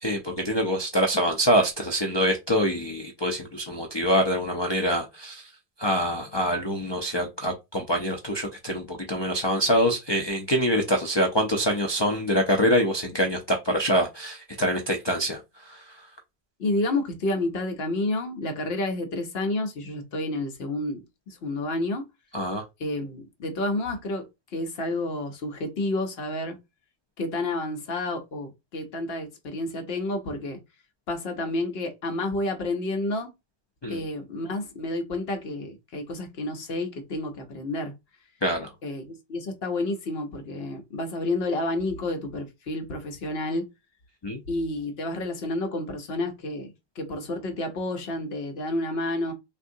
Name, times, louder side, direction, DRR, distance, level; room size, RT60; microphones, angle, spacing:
voice 1, 0.0-5.5 5.8-15.4 15.7-15.8 22.3-22.6 33.8-34.0 38.4-38.7 44.2-44.4, equal, 45° left, 0.3 m, -25 dB
voice 2, 16.6-21.0 21.3-22.0 22.8-24.3 24.5-26.6 27.2-30.6 31.1-33.3 33.9-37.9 38.8-43.6 44.5-49.3, left 2 dB, 65° left, 1.0 m, -30 dB
3.5 x 2.5 x 2.6 m
omnidirectional pair, 1.1 m